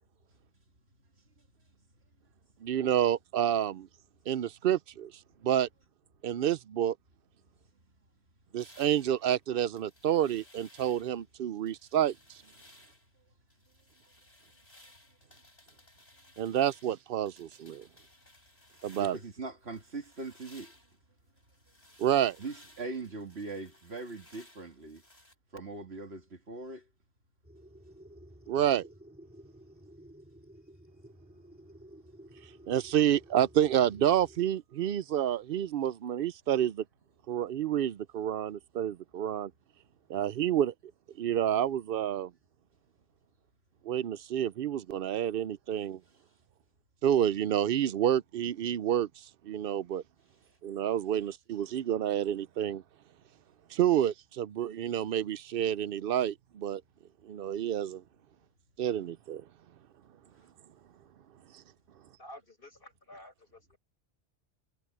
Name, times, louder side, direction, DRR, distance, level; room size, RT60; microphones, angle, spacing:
voice 1, 2.6-3.9 4.3-5.1 5.4-5.7 6.2-6.9 8.5-12.1 16.4-17.9 18.8-19.2 22.0-22.4 28.5-28.9 32.7-36.8 37.3-39.5 40.1-40.7 41.2-42.3 43.8-46.0 47.0-49.1 49.4-50.0 50.6-52.8 53.7-56.8 57.2-58.0 58.8-59.4, right 10 dB, 65° right, 0.7 m, -29 dB
sound 1, 8.6-11.3 11.7-13.1 13.5-19.4 19.7-25.3, left 1 dB, 40° left, 4.4 m, -59 dB
voice 2, 19.0-20.7 22.4-25.0 25.5-26.9, right 3 dB, 80° right, 2.7 m, -41 dB
sound 2, 27.4-34.4, right 1 dB, 10° right, 2.4 m, -54 dB
voice 3, 62.2-63.8, left 1 dB, 60° left, 7.0 m, -51 dB
omnidirectional pair, 1.0 m